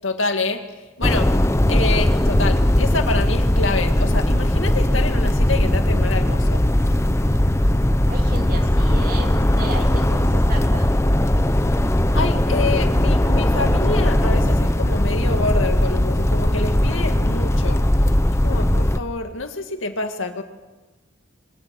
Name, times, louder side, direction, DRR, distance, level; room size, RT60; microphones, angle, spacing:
voice 1, 0.0-0.6 1.0-1.3 1.7-6.6 12.1-17.9 18.4-20.4, left 3 dB, 80° left, 6 dB, 2.2 m, -27 dB
sound 1, 1.0-19.0, left 1 dB, 15° left, 0.8 m, -18 dB
voice 2, 8.1-10.9, right 2 dB, 45° right, 3 dB, 2.6 m, -34 dB
23.0 x 18.5 x 7.8 m, 1.2 s
head